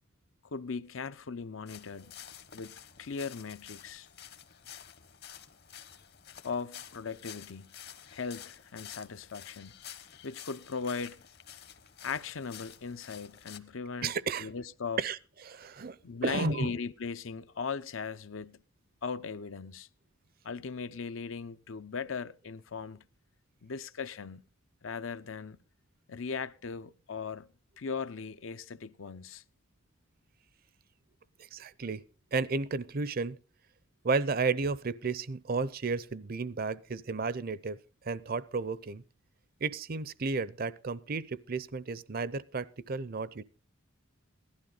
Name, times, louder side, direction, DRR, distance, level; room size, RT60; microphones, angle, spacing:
voice 1, 0.4-2.1 2.5-4.1 6.4-7.7 8.1-9.7 10.2-11.2 12.0-14.1 14.4-15.0 16.0-18.6 19.0-19.9 20.4-23.0 23.6-24.4 24.8-25.6 26.1-27.5 27.8-29.4, left 5 dB, 70° left, 0.7 m, -38 dB
sound 1, 1.7-13.6, left 9 dB, 50° left, 1.1 m, -50 dB
voice 2, 14.0-14.5 15.0-15.2 15.5-16.0 16.2-16.8 31.5-32.0 32.3-33.4 34.0-37.8 38.0-39.0 39.6-43.4, right 4 dB, 45° right, 0.6 m, -32 dB
17.0 x 12.0 x 3.9 m
head